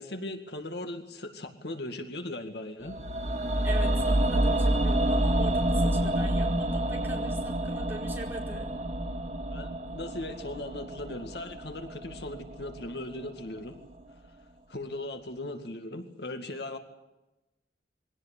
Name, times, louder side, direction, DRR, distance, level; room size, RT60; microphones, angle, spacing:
voice 1, 0.0-3.0 9.5-13.8 14.7-16.8, left 1 dB, 70° left, 6 dB, 2.2 m, -38 dB
sound 1, 2.9-13.0 13.3-13.4, right 1 dB, 40° right, 2.8 m, -28 dB
voice 2, 3.6-8.7, right 1 dB, 10° right, -1 dB, 4.8 m, -42 dB
22.5 x 17.5 x 8.5 m, 1.0 s
head